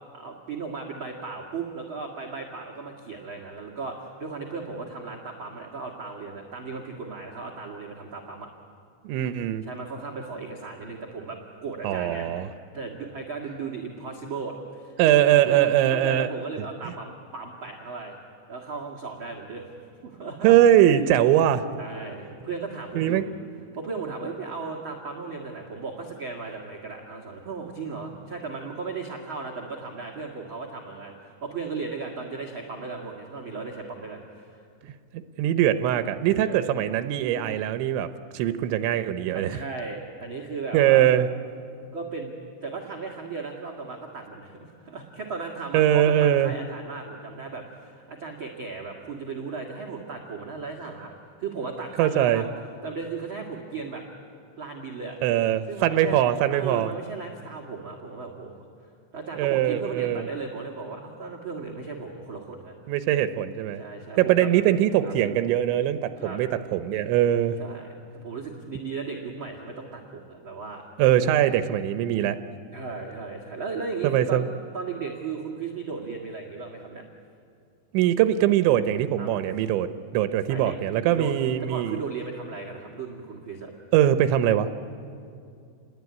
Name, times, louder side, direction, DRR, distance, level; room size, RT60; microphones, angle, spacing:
voice 1, 0.1-8.5 9.6-12.5 12.7-18.2 18.5-19.7 20.0-20.6 21.8-23.2 23.7-34.6 36.2-36.6 39.3-41.1 41.9-42.3 42.6-51.1 51.4-52.4 52.8-54.0 54.6-55.2 55.7-56.2 56.5-58.6 59.1-62.7 63.8-64.5 65.0-65.1 66.2-66.4 67.6-70.8 72.7-74.5 74.7-77.0 79.2-79.4 80.5-80.8 81.1-81.3 81.6-83.7, right 4 dB, 45° right, -1 dB, 1.8 m, -36 dB
voice 2, 9.0-9.6 11.8-12.5 15.0-16.3 20.4-21.7 23.0-23.2 35.1-38.1 38.3-39.6 40.7-41.3 45.7-46.5 52.0-52.4 55.2-56.9 59.4-60.3 62.9-63.8 64.2-67.6 71.0-72.4 74.0-74.5 77.9-79.9 80.1-82.0 83.9-84.7, right 11 dB, 85° right, 10 dB, 3.2 m, -22 dB
29.0 x 21.0 x 9.6 m, 2.4 s
omnidirectional pair, 5.2 m